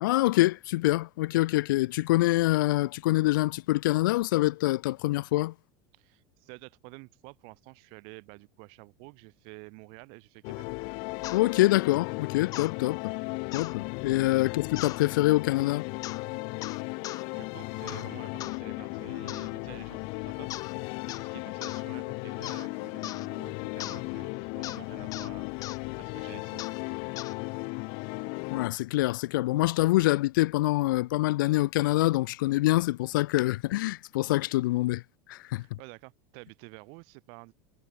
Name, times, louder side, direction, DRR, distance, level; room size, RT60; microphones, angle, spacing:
voice 1, 0.0-5.5 11.3-13.1 13.5-15.8 28.5-35.0 35.3-35.6, left 18 dB, 80° left, 1.0 m, -25 dB
voice 2, 5.9-10.7 17.3-20.9 21.1-25.5 25.9-26.6 26.9-27.2 35.6-37.5, right 35 dB, 60° right, 3.9 m, -49 dB
sound 1, 10.4-28.7, left 34 dB, 55° left, 1.7 m, -36 dB
sound 2, 11.2-11.4 12.5-12.7 13.5-13.8 14.8-15.0 16.0-16.2 16.6-17.2 17.9-18.1 18.4-18.6 19.3-19.5 20.5-20.8 21.1-21.3 21.6-21.8 22.4-22.7 23.0-23.3 23.8-24.0 24.6-24.8 25.1-25.3 25.6-25.8 26.6-26.8 27.2-27.4, left 14 dB, 35° left, 0.5 m, -39 dB
supercardioid pair, 140°, 11 cm